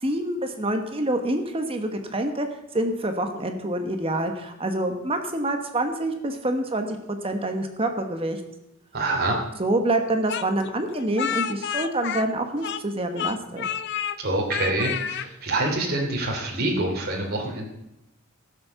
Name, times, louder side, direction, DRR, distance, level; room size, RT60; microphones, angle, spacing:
voice 1, 0.0-2.5 2.7-7.0 7.2-8.4 9.6-13.7, right 1 dB, 25° right, 6 dB, 1.2 m, -26 dB
voice 2, 8.9-9.4 14.2-17.7, right 2 dB, 50° right, -1 dB, 2.9 m, -26 dB
Speech, 10.3-12.9 13.2-14.2 14.5-15.3, left 8 dB, 55° left, 0.6 m, -30 dB
15.5 x 7.3 x 6.9 m, 0.88 s
head